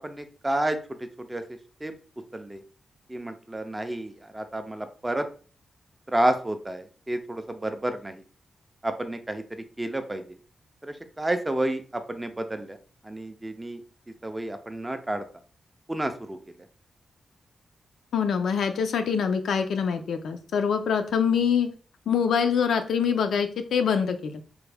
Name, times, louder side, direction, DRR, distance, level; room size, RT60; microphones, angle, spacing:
voice 1, 0.0-1.9 2.3-2.6 3.1-5.3 6.1-8.2 8.8-10.4 10.8-12.8 13.0-13.8 14.2-15.2 15.9-16.4, right 1 dB, 10° right, 8 dB, 0.3 m, -30 dB
voice 2, 18.1-21.7 22.1-24.4, left 7 dB, 85° left, 7 dB, 0.4 m, -24 dB
3.4 x 2.1 x 3.3 m, 0.39 s
wide cardioid pair, 170°, 0 cm